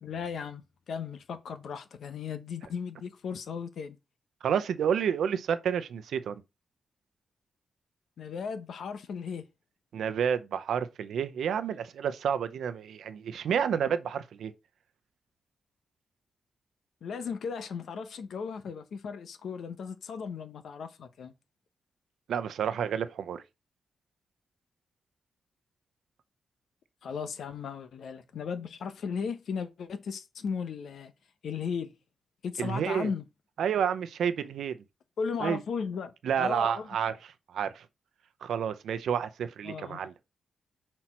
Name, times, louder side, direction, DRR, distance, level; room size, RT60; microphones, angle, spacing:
voice 1, 0.0-4.0 8.2-9.4 17.0-21.3 27.0-31.1 31.4-31.9 32.4-33.2 35.2-36.9 39.6-40.0, left 6 dB, 70° left, 0.9 m, -36 dB
voice 2, 4.4-6.4 9.9-14.5 22.3-23.4 32.6-33.1 33.6-34.8 35.4-35.6 36.2-37.8 38.4-40.1, right 8 dB, 85° right, 0.7 m, -30 dB
6.0 x 4.4 x 4.4 m
wide cardioid pair, 140°, 0 cm